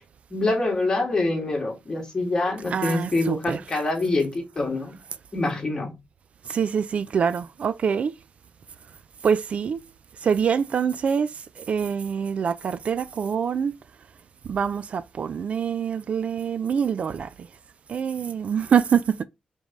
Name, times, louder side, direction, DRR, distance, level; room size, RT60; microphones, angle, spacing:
voice 1, 0.3-4.9 5.3-5.9, left 2 dB, 25° left, 2.1 m, -25 dB
voice 2, 2.6-3.8 6.5-8.1 9.2-9.8 10.2-13.7 14.4-17.5 17.9-19.2, right 7 dB, 50° right, 0.4 m, -25 dB
5.0 x 3.6 x 5.4 m
wide cardioid pair, 145°, 3 cm